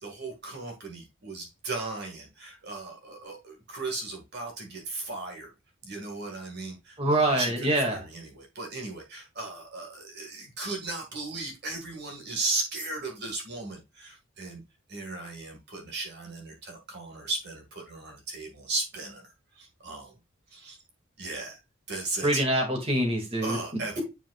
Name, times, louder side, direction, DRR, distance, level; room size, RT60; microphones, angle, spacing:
voice 1, 0.0-5.5 5.8-14.6 14.9-19.3 19.6-20.1 20.5-20.8 21.2-21.6 21.9-22.4 23.4-24.0, right 3 dB, 50° right, 2 dB, 1.8 m, -36 dB
voice 2, 7.0-8.0 22.2-23.6, right 1 dB, 25° right, 1 dB, 2.1 m, -25 dB
8.9 x 5.0 x 2.3 m, 0.24 s
head